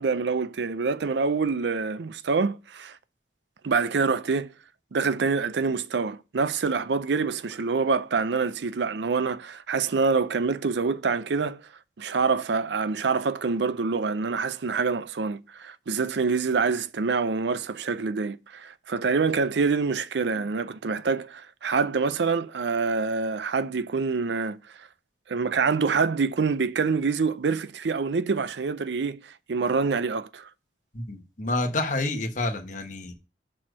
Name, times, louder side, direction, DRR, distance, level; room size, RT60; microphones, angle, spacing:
voice 1, 0.0-3.0 3.6-4.5 4.9-11.6 12.0-24.6 25.3-30.5, right 4 dB, 80° right, 0.5 m, -26 dB
voice 2, 30.9-33.1, left 2 dB, 45° left, 1.2 m, -29 dB
6.4 x 4.4 x 6.2 m
head